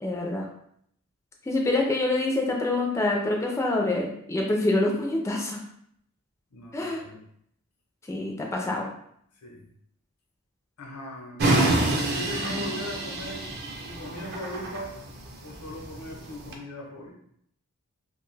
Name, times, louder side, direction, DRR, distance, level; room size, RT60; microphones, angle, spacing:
voice 1, 0.0-0.5 1.5-5.6 6.7-7.0 8.1-8.9 12.4-12.6, left 2 dB, 15° left, 0 dB, 0.3 m, -26 dB
voice 2, 6.5-7.2 9.3-9.6 10.8-13.4 13.8-14.9 15.4-17.1, left 1 dB, 90° left, 0 dB, 0.7 m, -39 dB
sound 1, 11.4-16.5, right 2 dB, 45° right, 0.5 m, -27 dB
2.6 x 2.2 x 3.1 m, 0.70 s
head